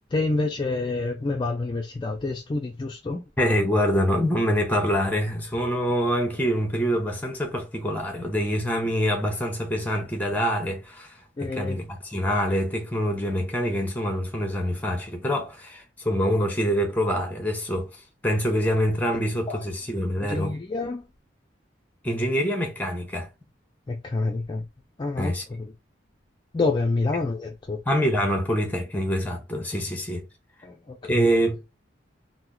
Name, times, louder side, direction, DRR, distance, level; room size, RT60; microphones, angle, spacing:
voice 1, 0.1-3.2 11.4-11.8 19.5-19.6 20.2-21.0 23.9-24.6 25.0-25.7 26.5-27.8 30.6-31.3, left 3 dB, 25° left, 0.3 m, -28 dB
voice 2, 3.4-20.6 22.0-23.3 25.2-25.4 27.9-30.2 31.0-31.6, equal, 10° left, 0.7 m, -25 dB
3.0 x 2.0 x 3.7 m
head